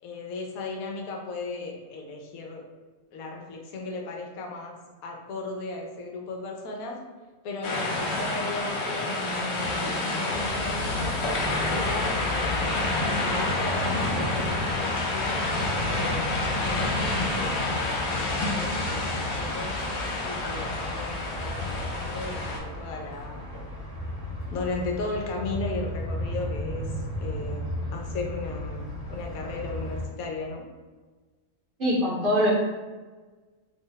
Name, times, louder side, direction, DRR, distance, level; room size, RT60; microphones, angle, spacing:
voice 1, 0.0-2.6 3.1-4.8 5.0-7.0 7.4-11.2 11.7-15.5 15.9-19.7 20.2-23.4 24.5-26.9 27.2-30.7, left 3 dB, 85° left, 1 dB, 1.0 m, -36 dB
sound 1, 7.6-22.6, left 2 dB, 60° left, 0.8 m, -28 dB
sound 2, 10.3-30.0, left 1 dB, 45° left, 1.1 m, -35 dB
voice 2, 31.8-32.5, equal, 45° right, -6 dB, 0.8 m, -23 dB
2.7 x 2.0 x 3.8 m, 1.3 s
omnidirectional pair, 1.5 m